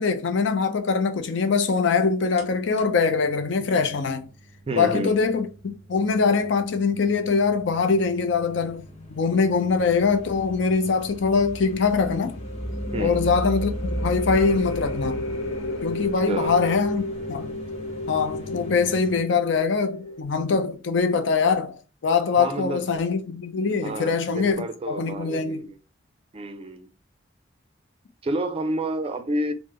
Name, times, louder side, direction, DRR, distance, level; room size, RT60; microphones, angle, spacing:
voice 1, 0.0-4.3 4.8-12.4 13.0-15.3 15.8-17.6 18.1-21.8 22.0-25.6, left 5 dB, 65° left, 0.5 m, -23 dB
sound 1, 2.4-19.2, left 1 dB, 35° left, 0.8 m, -43 dB
voice 2, 4.7-5.2 12.9-13.2 16.3-16.6 22.4-23.0 23.8-25.8 26.3-26.9 28.2-29.5, right 1 dB, 30° right, 0.4 m, -29 dB
sound 2, 9.9-20.2, equal, 85° left, 1.0 m, -32 dB
3.1 x 2.0 x 3.5 m
head